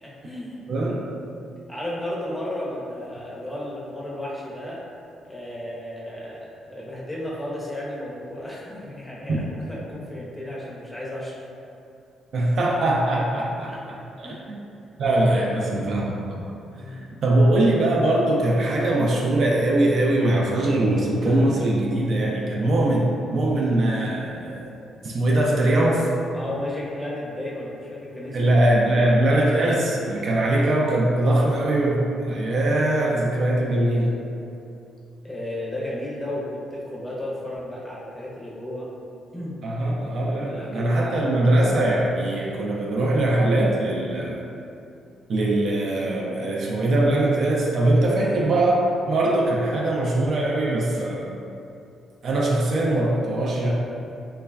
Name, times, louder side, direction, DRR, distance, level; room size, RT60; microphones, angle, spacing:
voice 1, 0.0-0.7 1.7-4.8 5.2-6.4 6.6-11.4 13.7-13.8 14.2-14.9 16.7-17.2 26.3-29.1 31.2-31.6 35.2-38.9 39.3-39.5 40.3-41.3, left 1 dB, 5° left, -6 dB, 0.6 m, -34 dB
voice 2, 0.7-1.0 12.3-14.6 15.0-16.4 17.2-24.7 25.0-26.1 28.3-34.2 39.6-44.4 45.3-51.3 52.2-53.7, right 1 dB, 60° right, -3 dB, 0.3 m, -21 dB
3.1 x 2.1 x 2.3 m, 2.6 s
cardioid pair, 90°, 0 cm